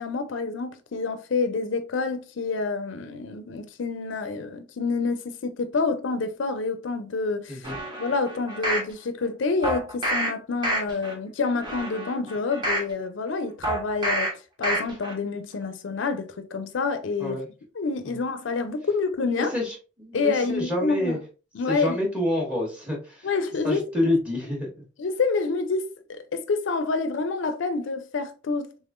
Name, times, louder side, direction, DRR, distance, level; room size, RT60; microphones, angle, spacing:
voice 1, 0.0-7.7 8.0-14.3 14.6-17.4 17.7-19.5 20.1-21.2 21.5-22.0 23.2-24.1 25.0-28.7, left 4 dB, 80° left, 0.5 m, -28 dB
voice 2, 7.5-7.8 17.2-17.5 18.0-18.1 19.4-21.2 21.7-23.3 23.6-24.7, left 1 dB, 5° right, 1.3 m, -28 dB
sound 1, 7.6-8.9 9.6-10.3 10.6-11.1 11.6-12.9 13.6-14.3 14.6-15.1 15.5-15.6, right 1 dB, 25° right, 1.1 m, -28 dB
3.5 x 3.5 x 2.5 m
head